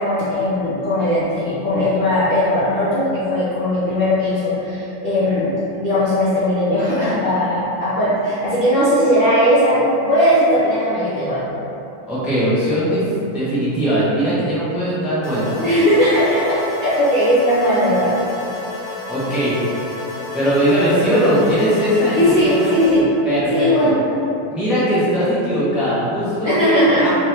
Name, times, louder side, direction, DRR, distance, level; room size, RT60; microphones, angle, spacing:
voice 1, 0.0-5.5 5.8-11.4 15.6-18.2 22.1-23.1 23.5-24.0 26.4-27.1, equal, 55° left, -12 dB, 0.5 m, -18 dB
voice 2, 12.1-15.6 18.8-19.6 20.3-22.9 23.2-23.9 24.5-27.1, equal, ahead, -11 dB, 0.4 m, -20 dB
sound 1, 15.2-23.0, left 3 dB, 80° left, 1.5 m, -31 dB
3.5 x 3.0 x 3.3 m, 2.8 s
omnidirectional pair, 2.0 m